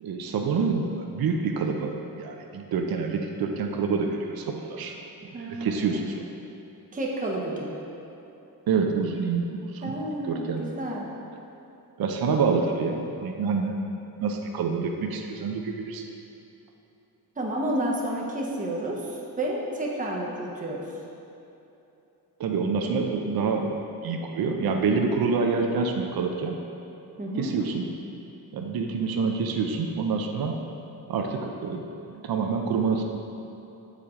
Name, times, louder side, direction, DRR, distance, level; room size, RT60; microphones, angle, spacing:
voice 1, 0.0-5.0 5.4-6.2 8.7-10.0 10.2-10.6 12.0-13.7 14.2-16.0 22.4-26.6 27.4-27.9 28.5-30.6 31.1-31.8 32.1-33.0, right 5 dB, 70° right, 3 dB, 0.6 m, -27 dB
voice 2, 5.3-6.0 6.9-7.8 9.8-11.1 17.4-20.8 27.2-27.5, right 1 dB, 20° right, -2 dB, 0.8 m, -30 dB
7.0 x 4.9 x 3.7 m, 2.9 s
wide cardioid pair, 105°, 37 cm